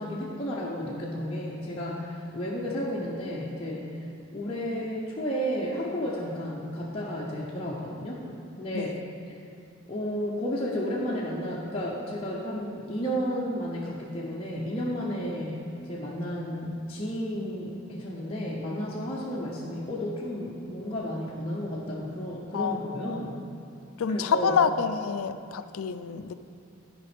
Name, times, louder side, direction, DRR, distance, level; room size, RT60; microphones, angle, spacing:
voice 1, 0.0-3.9 4.3-8.2 8.6-9.0 9.9-23.3 24.1-24.5, equal, 25° left, -7 dB, 0.8 m, -32 dB
voice 2, 22.5-23.5 24.0-26.3, left 6 dB, 75° left, 11 dB, 0.4 m, -28 dB
10.5 x 5.2 x 5.0 m, 2.5 s
head